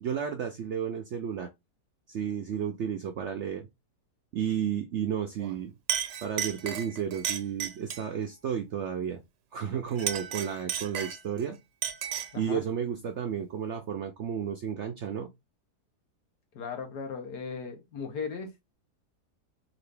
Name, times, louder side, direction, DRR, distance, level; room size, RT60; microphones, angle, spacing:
voice 1, 0.0-1.5 2.1-3.7 4.3-5.8 6.2-9.2 9.5-11.6 12.3-15.3, right 8 dB, 70° right, 0.6 m, -32 dB
Chink clink, 5.4-5.6 5.9-8.1 9.9-11.4 11.8-12.4, right 9 dB, 90° right, 1.4 m, -33 dB
voice 2, 16.5-18.7, left 5 dB, 80° left, 1.6 m, -37 dB
3.9 x 2.6 x 3.3 m
omnidirectional pair, 1.7 m